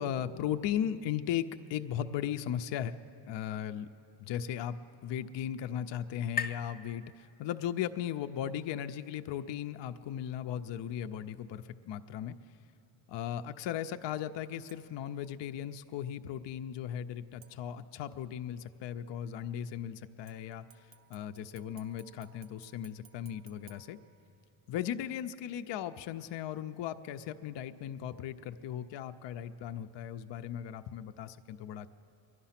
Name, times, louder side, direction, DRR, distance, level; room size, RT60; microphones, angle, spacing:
voice 1, 0.0-2.9 3.3-3.9 4.2-4.8 5.0-12.3 13.1-24.0 24.7-31.9, left 10 dB, 70° left, 8 dB, 0.5 m, -37 dB
sound 1, 4.0-7.8, left 5 dB, 20° left, 0.5 m, -43 dB
sound 2, 14.7-15.1 17.4-18.1 20.3-24.7 25.1-25.2, right 9 dB, 80° right, 0.9 m, -62 dB
22.0 x 11.0 x 5.8 m, 2.6 s
cardioid pair, 140°, 45 cm